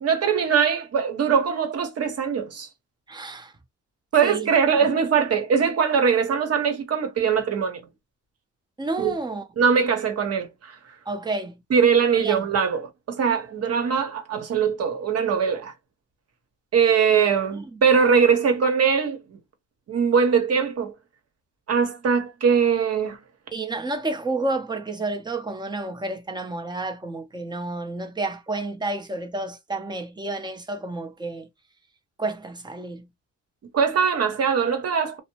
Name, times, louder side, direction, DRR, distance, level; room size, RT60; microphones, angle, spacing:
voice 1, 0.0-2.7 4.1-7.9 9.0-9.1 9.6-10.8 11.7-15.7 16.7-19.2 19.9-20.9 21.7-23.2 33.7-35.2, right 6 dB, 55° right, 1.0 m, -21 dB
voice 2, 3.1-3.5 4.2-4.5 4.8-4.9 8.8-9.5 11.1-11.6 12.2-12.5 23.5-31.5 32.2-33.1, right 2 dB, 15° right, 0.7 m, -30 dB
2.7 x 2.0 x 2.9 m
cardioid pair, 90°, 30 cm